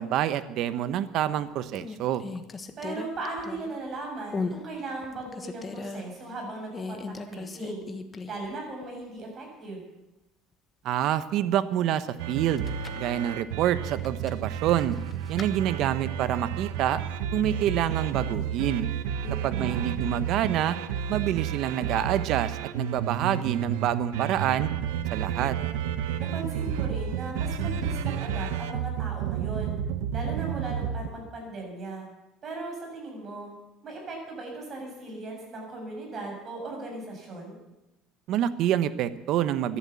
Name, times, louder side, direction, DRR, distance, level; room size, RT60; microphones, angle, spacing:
voice 1, 0.0-2.2 10.8-12.7 12.9-15.0 15.3-17.0 17.3-18.9 19.4-20.8 21.1-24.7 25.1-25.5 38.3-39.8, right 11 dB, 60° right, 14 dB, 1.0 m, -27 dB
sound 1, 1.0-1.3 1.7-3.9 4.3-4.6 5.0-6.0 6.7-8.5 8.8-8.9 12.4-13.1 14.0-15.5, left 4 dB, 25° left, 1.2 m, -37 dB
voice 2, 2.8-7.9 8.2-9.8 19.2-19.9 26.2-29.8 30.1-32.1 32.4-33.5 33.8-37.6, right 2 dB, 35° right, 1 dB, 7.5 m, -38 dB
sound 2, 12.2-31.1, right 9 dB, 90° right, 0.9 m, -31 dB
14.0 x 11.5 x 8.4 m, 0.98 s
cardioid pair, 120°, 0 cm